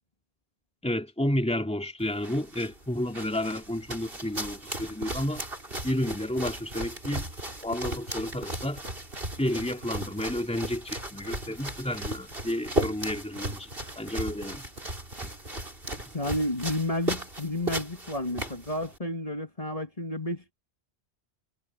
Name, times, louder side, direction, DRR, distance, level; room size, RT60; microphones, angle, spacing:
voice 1, 0.8-5.4 5.8-7.3 7.6-8.8 9.4-13.7 13.9-14.7 15.2-15.3, left 1 dB, 5° left, 2.8 m, -31 dB
sound 1, 2.0-19.0, right 1 dB, 55° right, 5.5 m, -36 dB
voice 2, 16.1-20.5, left 1 dB, 30° left, 2.9 m, -31 dB
omnidirectional pair, 1.1 m